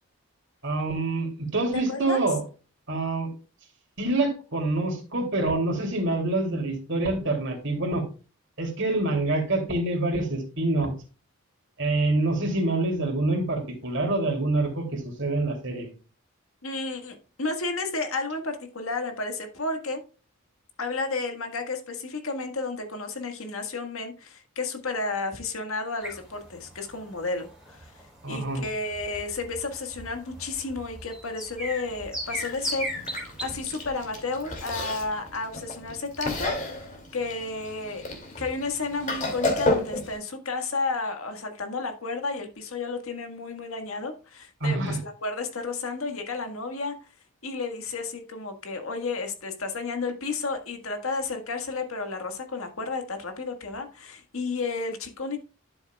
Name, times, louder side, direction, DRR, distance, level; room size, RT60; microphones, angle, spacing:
voice 1, 0.6-2.4 2.9-3.3 4.0-8.0 8.6-10.9 11.8-15.9 28.2-28.6 44.6-45.0, right 2 dB, 55° right, 2 dB, 2.9 m, -26 dB
voice 2, 1.7-2.2 16.6-20.0 20.8-27.9 28.3-38.0 38.4-47.0 47.4-55.4, left 3 dB, 75° left, 5 dB, 1.6 m, -32 dB
sound 1, 26.0-33.4, equal, 5° right, 3.5 m, -37 dB
Chewing mastication, 32.2-40.2, left 2 dB, 35° left, 2.5 m, -32 dB
12.0 x 7.0 x 2.3 m, 0.34 s
head